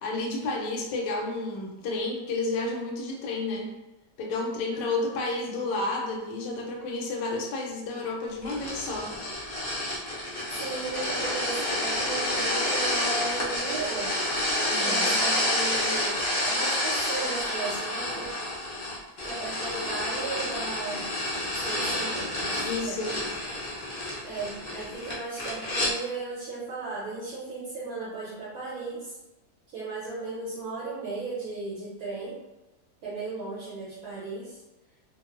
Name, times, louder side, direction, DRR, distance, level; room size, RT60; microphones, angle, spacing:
voice 1, 0.0-3.7 4.2-9.1 14.7-15.2 22.6-23.2, left 2 dB, 80° left, 0 dB, 1.2 m, -31 dB
voice 2, 4.7-5.1 10.6-14.1 14.8-16.2 16.4-18.3 19.2-21.1 21.5-23.0 24.2-29.2 29.7-32.4 33.0-34.6, right 3 dB, 65° right, -8 dB, 1.0 m, -36 dB
sound 1, 8.4-25.9, left 1 dB, 60° left, 0.4 m, -29 dB
2.9 x 2.0 x 2.3 m, 1.0 s
omnidirectional pair, 1.9 m